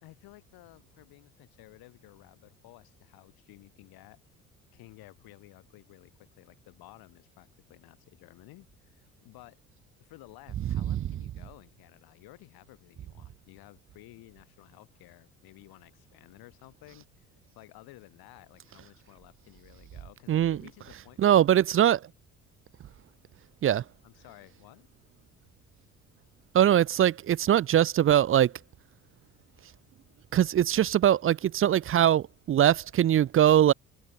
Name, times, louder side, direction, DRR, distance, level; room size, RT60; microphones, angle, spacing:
voice 1, 0.0-4.2 4.7-9.6 10.0-17.3 17.5-21.6 24.0-24.9, left 19 dB, 70° left, 4.7 m, -54 dB
voice 2, 20.3-20.6 21.2-22.0 23.6-23.8 26.5-28.5 30.3-33.7, right 11 dB, 35° right, 0.5 m, -22 dB
open air
hypercardioid pair, 60°, 38 cm